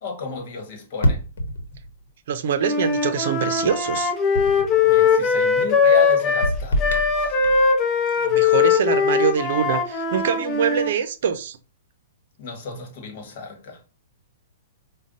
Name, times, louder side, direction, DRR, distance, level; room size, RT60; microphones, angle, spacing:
voice 1, 0.0-1.2 4.8-6.9 7.2-7.3 12.4-13.8, left 4 dB, 50° left, 1.3 m, -32 dB
sound 1, 1.0-2.1 4.4-4.9 6.4-7.7, equal, 80° left, 1.0 m, -26 dB
voice 2, 2.3-4.1 8.2-11.6, right 7 dB, 60° right, 0.6 m, -24 dB
Wind instrument woodwind instrument, 2.6-10.9, left 5 dB, 30° left, 0.8 m, -20 dB
5.1 x 2.3 x 2.5 m
hypercardioid pair, 140°, 0 cm